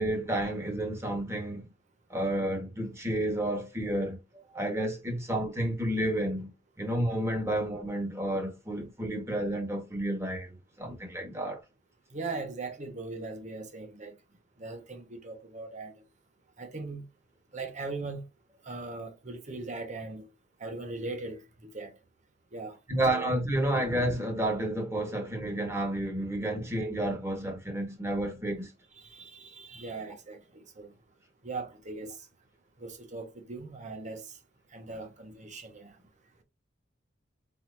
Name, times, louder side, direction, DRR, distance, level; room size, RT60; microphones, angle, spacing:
voice 1, 0.0-1.7 2.1-4.2 4.5-6.5 6.8-11.6 22.9-28.7, right 1 dB, 15° right, 1.6 m, -31 dB
voice 2, 12.1-14.2 14.6-15.9 16.6-17.0 17.5-18.2 18.6-20.3 20.6-21.9 22.5-22.8 23.1-23.2 28.9-30.9 31.4-32.2 32.8-34.3 34.7-36.0, right 3 dB, 40° right, 1.2 m, -39 dB
4.6 x 4.0 x 2.7 m
head